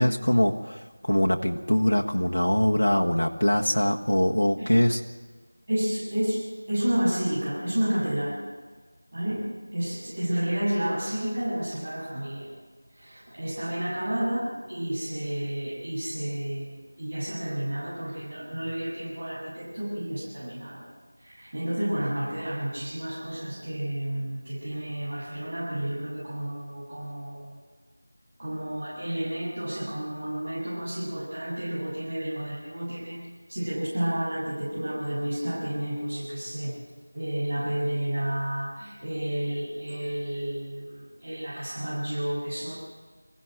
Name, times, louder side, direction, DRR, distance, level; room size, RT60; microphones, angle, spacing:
voice 1, 0.0-5.0, left 1 dB, 85° left, 0 dB, 1.4 m, -23 dB
voice 2, 5.7-6.4 6.7-8.4 9.1-9.5 9.7-12.5 12.9-20.9 21.2-27.6 28.4-36.7 37.1-42.7, right 1 dB, 40° right, -8 dB, 7.8 m, -31 dB
25.0 x 16.0 x 8.0 m, 1.4 s
figure-of-eight pair, 175°, 0 cm